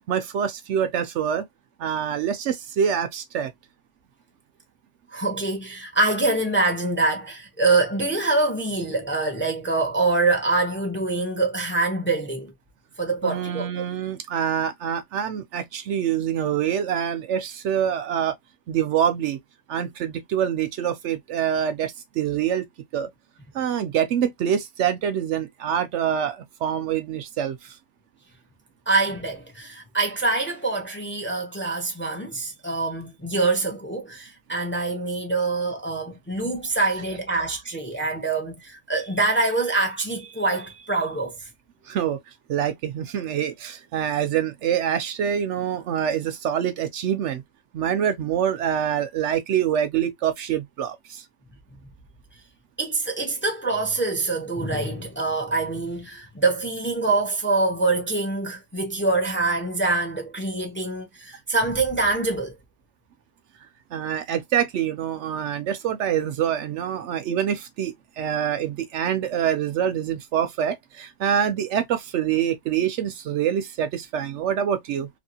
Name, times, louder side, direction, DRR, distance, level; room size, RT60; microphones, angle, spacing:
voice 1, 0.1-1.4 1.8-3.5 13.2-18.3 18.7-19.4 19.7-22.7 22.9-23.1 23.5-27.8 41.9-42.2 42.5-47.4 47.7-51.2 63.9-75.1, right 9 dB, 70° right, 0.8 m, -25 dB
voice 2, 5.1-12.5 13.0-13.7 28.9-41.5 52.8-62.5, right 3 dB, 10° left, 0.6 m, -25 dB
2.9 x 2.6 x 2.7 m
omnidirectional pair, 1.3 m